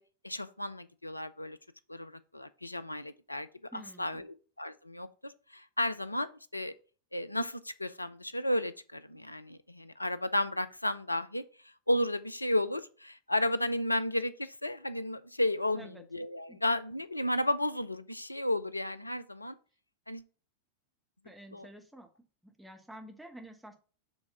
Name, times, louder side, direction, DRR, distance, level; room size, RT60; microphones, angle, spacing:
voice 1, 0.2-1.6 1.9-3.5 3.7-4.3 4.6-6.7 7.1-11.4 11.9-19.6 20.1-20.2 21.5-21.7, left 1 dB, 85° left, 0.5 m, -33 dB
voice 2, 3.7-4.2 15.7-16.0 16.5-16.6 21.2-22.1 22.4-23.7, right 1 dB, 5° right, 1.2 m, -49 dB
7.1 x 3.6 x 5.5 m
figure-of-eight pair, 90°, 0 cm